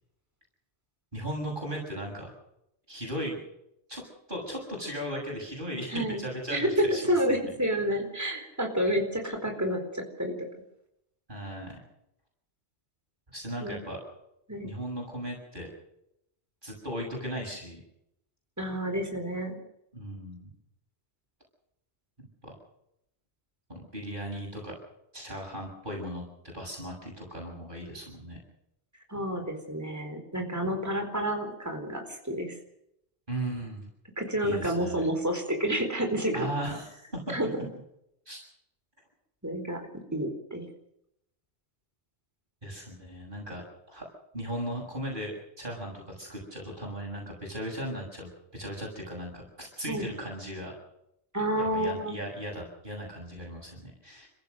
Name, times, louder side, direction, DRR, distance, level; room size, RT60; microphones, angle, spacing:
voice 1, 1.1-2.3 2.9-3.4 3.9-4.0 4.3-7.5 11.3-11.8 13.3-14.0 14.6-15.7 16.6-17.8 19.9-20.5 22.4-22.6 23.7-24.8 25.1-28.4 33.3-33.9 34.4-35.1 36.3-37.0 37.3-37.4 38.3-38.4 42.6-43.6 43.9-44.1 44.3-50.7 51.7-54.3, equal, 50° right, 0 dB, 7.1 m, -37 dB
voice 2, 5.9-6.2 6.5-10.5 13.6-13.8 14.5-14.7 18.6-19.6 29.1-32.5 34.2-36.5 37.3-37.5 39.4-40.7 49.9-50.1 51.3-52.2, equal, 15° right, 4 dB, 4.3 m, -29 dB
29.5 x 15.0 x 6.6 m, 0.80 s
omnidirectional pair, 1.1 m